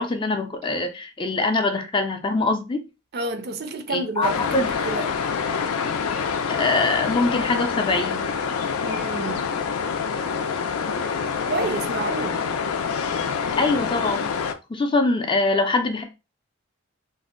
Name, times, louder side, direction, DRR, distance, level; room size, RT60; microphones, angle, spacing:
voice 1, 0.0-2.8 3.9-4.7 6.5-8.3 13.6-14.3 14.7-16.0, left 3 dB, 20° left, 0.4 m, -23 dB
voice 2, 3.1-5.1 8.8-9.5 11.5-12.4 15.0-15.1, right 2 dB, 45° right, 0.4 m, -30 dB
sound 1, 4.2-14.5, left 6 dB, 85° left, 0.4 m, -26 dB
2.6 x 2.1 x 3.7 m
head